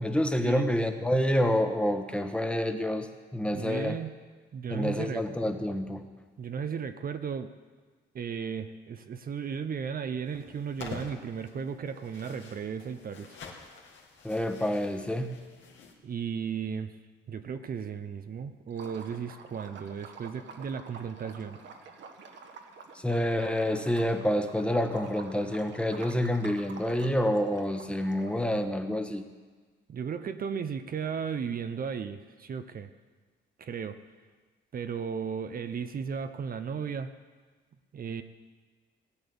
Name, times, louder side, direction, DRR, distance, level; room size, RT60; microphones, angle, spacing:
voice 1, 0.0-3.1 3.3-4.0 4.7-6.0 14.2-15.3 22.9-29.2, equal, 5° left, 6 dB, 1.4 m, -28 dB
voice 2, 3.5-4.2 4.5-5.2 6.4-7.5 8.1-13.4 16.0-17.0 17.3-21.6 29.9-32.9 33.6-34.0 34.7-37.1 37.9-38.2, right 6 dB, 45° right, 9 dB, 0.8 m, -35 dB
sound 1, 10.3-15.9, left 5 dB, 65° left, 2.4 m, -47 dB
Liquid, 18.7-28.6, right 4 dB, 65° right, 1.7 m, -48 dB
17.5 x 8.8 x 7.0 m, 1.4 s
cardioid pair, 90°, 20 cm